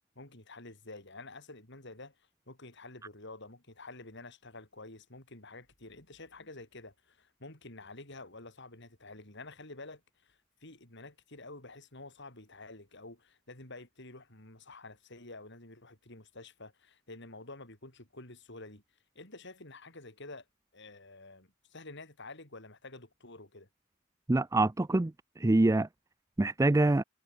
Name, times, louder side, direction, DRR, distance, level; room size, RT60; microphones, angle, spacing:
voice 1, 0.2-2.2 2.5-18.8 19.2-20.5 20.7-23.7, left 2 dB, 60° left, 6.9 m, -49 dB
voice 2, 24.3-25.1 25.4-25.9 26.4-27.0, right 2 dB, 15° right, 0.4 m, -25 dB
head